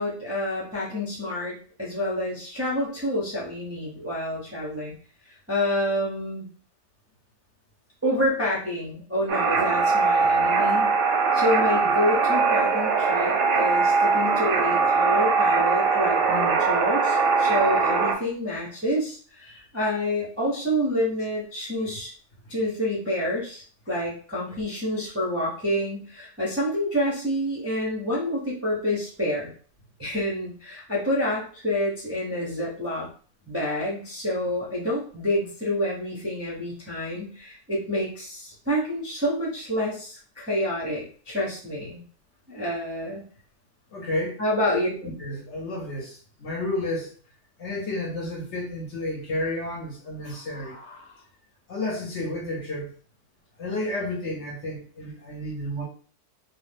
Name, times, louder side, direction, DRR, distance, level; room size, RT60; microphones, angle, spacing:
voice 1, 0.0-4.9 5.5-6.5 8.0-10.9 11.3-22.1 22.5-29.5 30.0-33.1 33.5-42.0 42.5-43.2 44.4-44.9, left 1 dB, 20° right, -7 dB, 0.3 m, -28 dB
sound 1, 9.3-18.1, right 4 dB, 65° right, 0.8 m, -21 dB
voice 2, 43.9-44.4 45.0-47.1 47.6-51.2 51.7-52.9 53.6-55.8, left 1 dB, 60° left, -2 dB, 0.9 m, -31 dB
2.5 x 2.1 x 3.3 m, 0.43 s
omnidirectional pair, 1.6 m